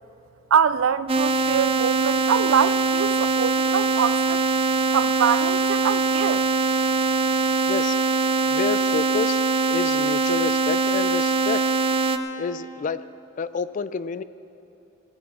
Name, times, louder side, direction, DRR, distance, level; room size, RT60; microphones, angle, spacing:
voice 1, 0.5-4.4 4.9-6.5, right 7 dB, 85° right, 0.4 m, -24 dB
sound 1, 1.1-12.2, right 3 dB, 30° right, 0.5 m, -22 dB
voice 2, 8.4-11.6 12.4-13.0 13.4-14.2, left 5 dB, 40° left, 0.3 m, -29 dB
17.0 x 12.5 x 4.3 m
head